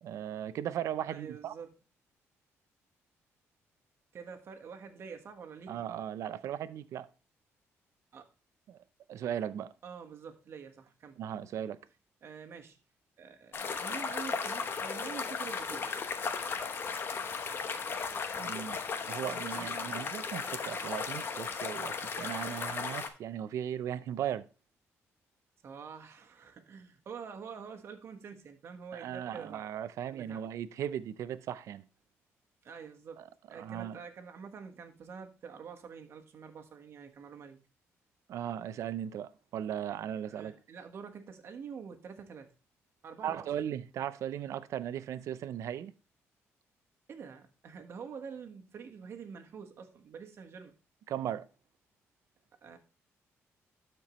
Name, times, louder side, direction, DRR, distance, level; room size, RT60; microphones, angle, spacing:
voice 1, 0.0-1.6 5.7-7.1 8.7-8.8 9.1-9.7 11.2-11.8 18.4-18.8 19.1-24.5 28.9-31.8 33.2-33.3 33.6-34.0 38.3-40.5 43.2-45.9 51.1-51.5, right 10 dB, 70° right, 0.5 m, -37 dB
voice 2, 1.1-1.7 4.1-5.8 8.1-8.2 9.8-11.2 12.2-12.8 13.2-15.9 19.5-19.7 25.6-29.6 30.1-30.4 32.6-37.6 40.3-42.5 43.0-43.6 47.1-50.7 52.6-52.8, right 6 dB, 55° right, 1.3 m, -47 dB
sound 1, 13.5-23.1, left 5 dB, 45° left, 0.9 m, -36 dB
12.5 x 4.5 x 3.0 m
cardioid pair, 110°, 5 cm